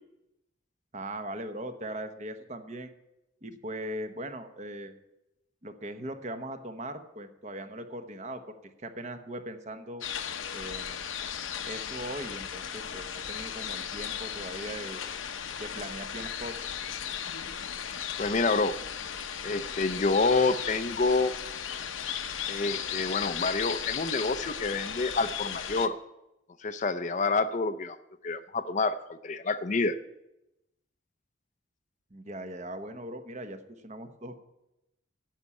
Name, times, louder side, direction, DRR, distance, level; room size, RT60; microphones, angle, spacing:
voice 1, 0.9-2.9 3.4-4.9 5.6-10.0 10.5-11.0 11.7-15.0 15.6-16.6 32.1-34.4, right 1 dB, 35° right, 7 dB, 1.1 m, -39 dB
sound 1, 10.0-25.9, left 8 dB, 85° left, 0.8 m, -36 dB
voice 2, 18.2-18.8 19.4-21.3 22.5-25.9 26.6-28.0 28.2-29.0 29.2-30.0, left 3 dB, 40° left, 11 dB, 0.5 m, -27 dB
10.5 x 7.2 x 9.6 m, 0.91 s
head